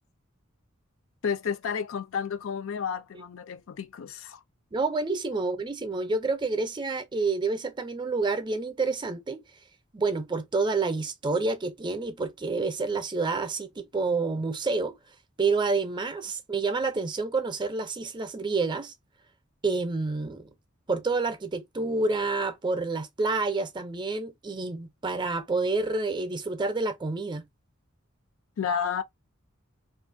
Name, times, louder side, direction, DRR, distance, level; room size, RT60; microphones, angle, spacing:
voice 1, 1.2-4.4 28.6-29.0, left 7 dB, 70° left, 0.4 m, -31 dB
voice 2, 4.7-9.4 9.9-15.0 15.4-18.9 19.6-20.5 20.9-27.5, right 3 dB, 20° right, 0.5 m, -28 dB
2.5 x 2.4 x 2.5 m
head